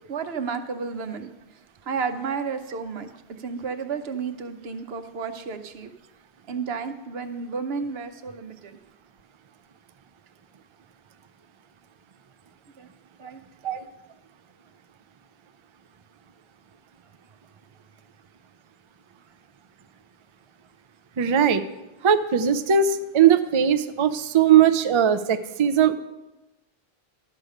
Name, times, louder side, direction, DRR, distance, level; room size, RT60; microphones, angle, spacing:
voice 1, 0.1-1.3 1.9-3.1 3.4-5.9 6.5-8.8 12.8-12.9 13.2-13.4, right 5 dB, 80° right, 8 dB, 1.0 m, -32 dB
voice 2, 21.2-21.6 22.0-26.0, right 8 dB, 45° right, 10 dB, 0.4 m, -19 dB
12.0 x 4.9 x 6.5 m, 1.0 s
omnidirectional pair, 1.0 m